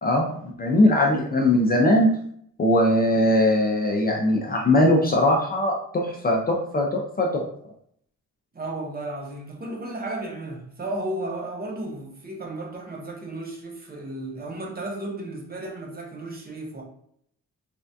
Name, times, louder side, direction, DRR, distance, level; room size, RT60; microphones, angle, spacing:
voice 1, 0.0-2.1 2.6-7.4, left 1 dB, 30° left, -1 dB, 0.4 m, -20 dB
voice 2, 8.5-16.8, right 1 dB, 30° right, -1 dB, 0.6 m, -34 dB
3.3 x 2.2 x 2.6 m, 0.66 s
wide cardioid pair, 165°, 32 cm